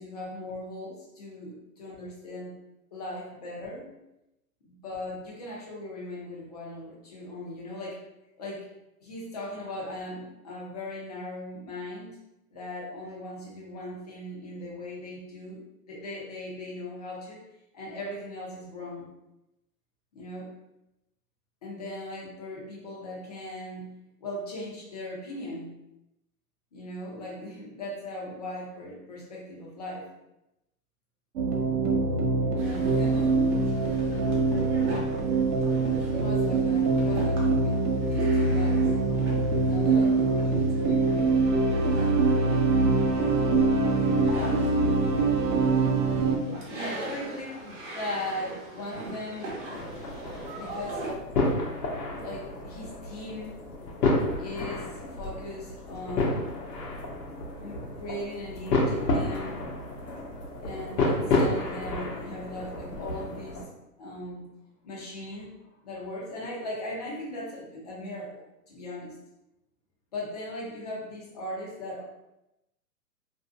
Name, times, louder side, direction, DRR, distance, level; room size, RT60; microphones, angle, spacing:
voice 1, 0.0-2.6 2.9-3.9 4.6-8.0 8.4-8.7 9.0-12.2 12.5-17.4 17.7-19.1 20.1-20.5 21.6-23.9 24.2-25.7 26.7-30.1 32.5-33.3 36.1-37.8 38.1-38.9 39.6-41.4 46.1-49.6 50.5-51.0 52.2-53.6 54.4-56.5 57.6-59.6 60.6-63.6 64.0-64.5 64.8-65.5 65.8-69.1 70.1-72.0, left 1 dB, 30° left, -4 dB, 0.4 m, -38 dB
sound 1, 31.4-46.4, right 3 dB, 85° right, 0.7 m, -24 dB
sound 2, 32.6-51.1, right 1 dB, 50° right, 0.9 m, -41 dB
sound 3, 49.7-63.7, left 2 dB, 85° left, 0.8 m, -30 dB
2.5 x 2.1 x 2.4 m, 0.91 s
hypercardioid pair, 145°, 47 cm